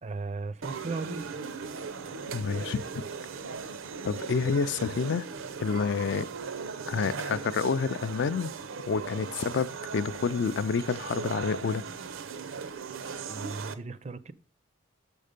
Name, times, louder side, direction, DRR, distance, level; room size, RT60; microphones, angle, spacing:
voice 1, 0.0-1.3 13.3-14.3, right 3 dB, 35° right, 0.4 m, -36 dB
sound 1, 0.6-13.7, right 5 dB, 80° right, 0.6 m, -38 dB
voice 2, 2.3-3.1 4.0-5.3 5.6-6.3 6.9-8.5 8.9-11.8, left 5 dB, 60° left, 0.3 m, -29 dB
6.6 x 5.4 x 5.0 m
head